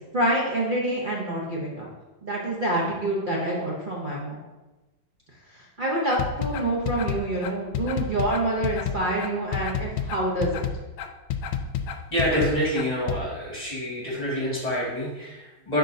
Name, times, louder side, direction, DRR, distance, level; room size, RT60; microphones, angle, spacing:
voice 1, 0.1-1.9 2.2-4.4 5.5-10.6, right 1 dB, 75° right, -4 dB, 0.4 m, -27 dB
sound 1, 6.1-13.2, left 8 dB, 75° left, 1.3 m, -29 dB
voice 2, 12.1-15.8, equal, 20° left, -6 dB, 2.0 m, -27 dB
10.5 x 4.5 x 2.7 m, 1.1 s
omnidirectional pair, 2.3 m